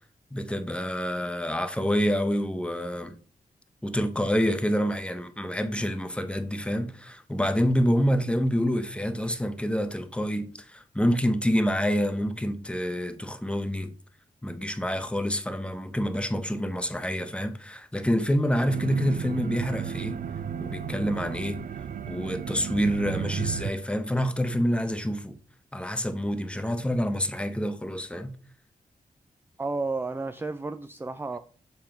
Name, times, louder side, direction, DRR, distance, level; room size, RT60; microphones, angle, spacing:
voice 1, 0.3-3.2 3.8-13.9 14.4-20.2 20.6-21.7 22.1-25.4 25.7-28.3, equal, 5° left, 0.8 m, -27 dB
sound 1, 18.7-23.7, right 8 dB, 75° right, 0.5 m, -33 dB
voice 2, 29.6-31.4, right 3 dB, 15° right, 0.4 m, -32 dB
7.0 x 3.7 x 4.4 m
cardioid pair, 65°, 14 cm